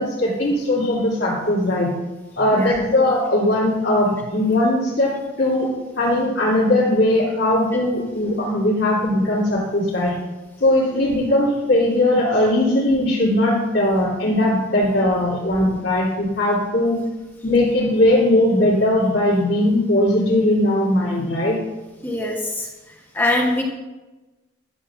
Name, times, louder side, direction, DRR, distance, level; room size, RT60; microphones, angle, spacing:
voice 1, 0.0-1.9 2.3-5.7 6.0-10.2 10.6-17.0 17.4-21.6, left 1 dB, 65° left, -11 dB, 2.7 m, -19 dB
voice 2, 22.0-22.7 23.1-23.6, left 1 dB, 10° left, -1 dB, 1.0 m, -22 dB
11.0 x 7.7 x 2.5 m, 1.1 s
head